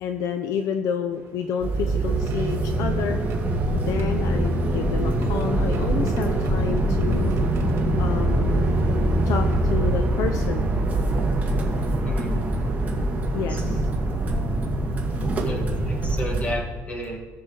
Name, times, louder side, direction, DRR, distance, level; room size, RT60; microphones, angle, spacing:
voice 1, 0.0-3.2 3.7-7.3 8.0-8.7 9.3-10.7 13.3-13.8, left 7 dB, 65° left, 7 dB, 0.6 m, -29 dB
sound 1, 1.1-10.4 11.3-11.4 12.9-13.1 13.8-14.0 15.6-15.7 16.2-16.4, right 3 dB, 55° right, 1.3 m, -36 dB
sound 2, 1.6-16.5, right 1 dB, 25° right, 1.7 m, -23 dB
voice 2, 12.0-12.6 13.3-13.9 15.4-17.2, left 1 dB, 25° left, 2 dB, 1.6 m, -33 dB
17.0 x 6.6 x 3.9 m, 1.4 s
cardioid pair, 160°, 6 cm